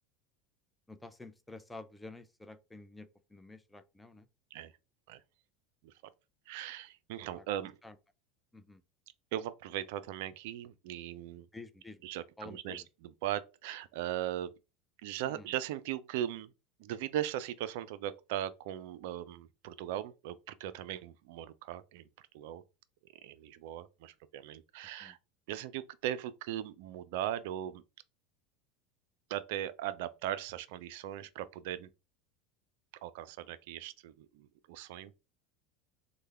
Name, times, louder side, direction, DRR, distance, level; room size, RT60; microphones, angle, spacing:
voice 1, 0.9-4.3 7.4-7.5 7.8-8.0 8.5-8.8 11.5-12.0 12.4-12.9 15.2-15.5 25.0-25.2, left 2 dB, 10° left, 0.4 m, -50 dB
voice 2, 6.5-7.8 9.3-11.5 12.0-14.6 15.0-16.5 16.8-22.6 23.2-25.2 25.5-27.8 29.3-31.9 33.0-35.1, right 12 dB, 70° right, 0.3 m, -39 dB
3.2 x 2.1 x 3.3 m
hypercardioid pair, 90°, 0 cm